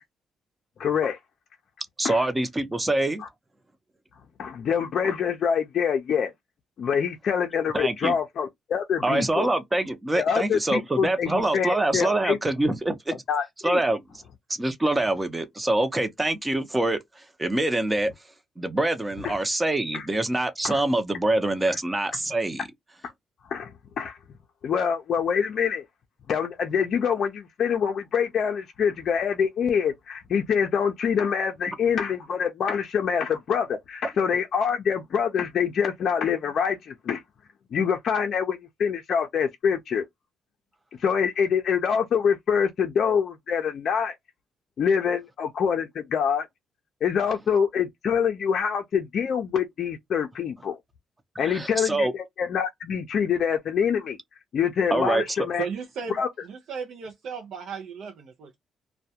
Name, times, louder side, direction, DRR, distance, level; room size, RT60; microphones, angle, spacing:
voice 1, 0.8-1.2 2.0-2.2 3.2-3.3 4.4-6.3 6.8-9.5 10.2-12.4 13.3-13.8 19.2-19.4 19.9-20.1 20.6-20.8 21.7-21.8 23.5-23.7 24.0-24.2 24.6-25.8 26.3-37.2 37.7-40.0 41.0-44.1 44.8-46.5 47.0-50.8 51.4-54.2 54.5-55.6 56.1-56.3, left 7 dB, 60° left, 0.4 m, -25 dB
voice 2, 2.0-3.2 7.7-8.1 9.0-13.1 13.6-14.2 14.5-17.0 17.4-18.1 18.6-22.6 31.7-31.8 51.4-52.1 54.9-55.2, right 2 dB, 15° right, 0.6 m, -25 dB
voice 3, 55.6-58.6, right 5 dB, 70° right, 0.5 m, -35 dB
2.2 x 2.1 x 2.7 m
cardioid pair, 90°, 0 cm